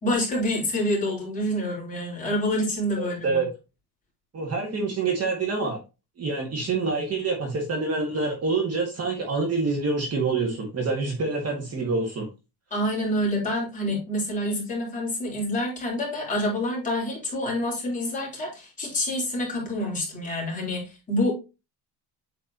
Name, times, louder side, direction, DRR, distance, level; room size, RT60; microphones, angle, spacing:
voice 1, 0.0-3.4 12.7-21.3, left 1 dB, 20° left, -4 dB, 3.4 m, -27 dB
voice 2, 3.0-3.5 4.3-5.8 6.2-12.3, right 3 dB, 35° right, 1 dB, 1.9 m, -26 dB
8.1 x 4.5 x 2.9 m, 0.27 s
cardioid pair, 155°, 41 cm